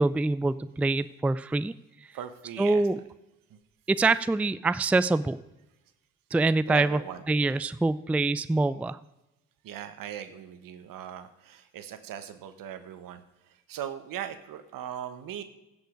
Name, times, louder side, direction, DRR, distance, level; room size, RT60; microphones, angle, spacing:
voice 1, 0.0-1.7 2.6-3.0 3.9-5.4 6.3-7.0 7.3-9.0, right 3 dB, 5° right, 15 dB, 0.4 m, -25 dB
voice 2, 2.1-3.0 3.5-3.6 6.7-7.6 9.6-15.4, right 10 dB, 70° right, 10 dB, 1.2 m, -39 dB
16.0 x 5.5 x 5.1 m, 0.95 s
hypercardioid pair, 55°, 35 cm